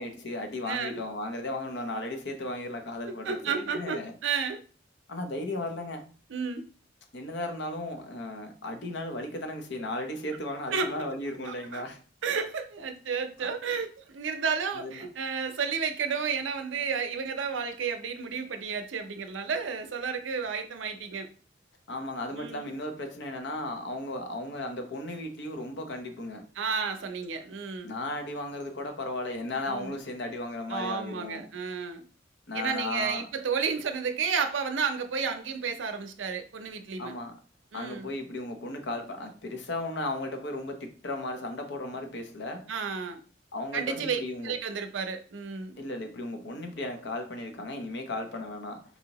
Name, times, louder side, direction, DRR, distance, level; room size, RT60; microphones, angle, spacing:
voice 1, 0.0-4.1 5.1-6.0 7.1-12.0 13.4-13.5 14.7-15.1 21.9-26.4 27.8-31.5 32.5-33.3 37.0-37.4 37.7-42.7 43.5-44.6 45.8-48.8, left 2 dB, 70° left, 0.7 m, -35 dB
voice 2, 0.7-1.0 3.1-4.6 6.3-6.6 10.7-11.1 11.5-11.8 12.2-21.3 22.3-22.7 26.6-27.9 29.7-29.9 30.7-32.0 32.5-37.1 37.7-38.1 42.0-42.1 42.7-43.2 43.7-45.8, right 5 dB, 85° right, 0.5 m, -32 dB
4.1 x 2.7 x 2.9 m
head